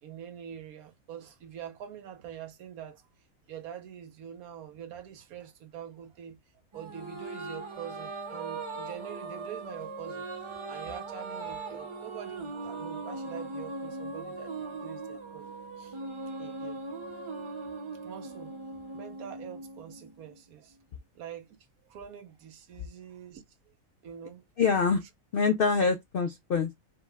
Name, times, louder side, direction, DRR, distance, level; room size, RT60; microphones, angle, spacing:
voice 1, 0.0-3.1 3.5-6.4 6.7-16.0 16.4-16.8 18.0-18.5 18.9-20.8 21.1-21.6 21.8-23.7 24.0-24.5, right 9 dB, 90° right, 1.2 m, -45 dB
sound 1, 6.7-20.3, right 3 dB, 30° right, 0.5 m, -39 dB
voice 2, 24.6-25.0 25.3-26.7, left 5 dB, 70° left, 0.5 m, -25 dB
5.1 x 2.2 x 3.4 m
omnidirectional pair, 1.5 m